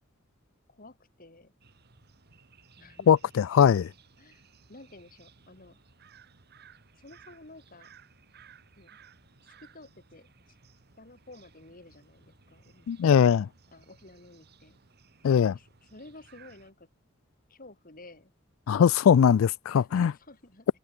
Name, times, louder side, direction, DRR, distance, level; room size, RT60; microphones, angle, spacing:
voice 1, 0.7-1.5 2.8-3.3 4.2-5.8 6.9-7.9 8.8-9.0 9.4-10.6 11.0-13.3 13.7-14.8 15.4-16.9 17.5-18.3 19.7-20.7, left 2 dB, 45° left, 3.6 m, -52 dB
sound 1, 1.6-16.7, right 5 dB, 50° right, 1.8 m, -58 dB
voice 2, 3.1-3.9 12.9-13.5 15.2-15.5 18.7-20.1, left 8 dB, 70° left, 0.3 m, -21 dB
head